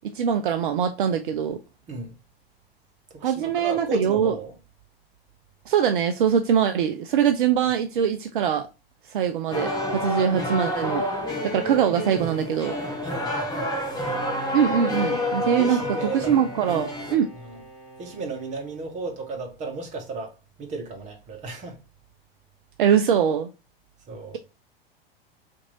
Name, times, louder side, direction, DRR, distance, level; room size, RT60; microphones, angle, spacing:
voice 1, 0.0-1.6 3.2-4.3 5.7-8.7 9.1-11.0 11.4-12.8 14.5-15.8 16.1-17.3 22.8-23.5, right 8 dB, 60° right, 0.5 m, -22 dB
voice 2, 3.1-4.5 13.0-13.7 15.4-16.3 17.3-17.6 18.0-21.8 24.1-24.4, right 3 dB, 25° right, 1.0 m, -34 dB
sound 1, 9.5-17.1, left 1 dB, 15° left, 1.0 m, -29 dB
Bowed string instrument, 13.9-19.5, right 1 dB, 55° left, 1.3 m, -44 dB
2.9 x 2.6 x 3.9 m
figure-of-eight pair, 90°, 30 cm